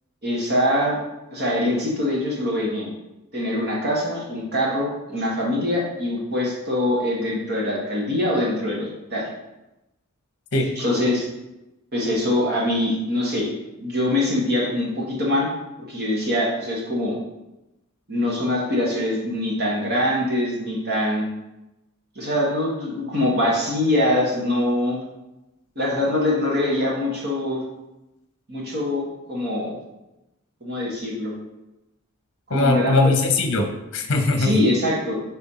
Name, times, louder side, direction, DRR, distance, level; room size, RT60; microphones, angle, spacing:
voice 1, 0.2-1.0 1.3-2.9 3.3-9.3 10.8-11.3 11.9-13.5 13.8-15.5 15.9-17.2 18.1-21.3 22.1-25.0 25.7-27.6 28.5-29.8 30.6-31.3 32.5-33.1 34.4-35.2, left 1 dB, 50° right, -3 dB, 1.6 m, -23 dB
voice 2, 32.5-34.6, left 3 dB, 60° left, 4 dB, 0.8 m, -20 dB
4.3 x 4.2 x 5.5 m, 0.96 s
head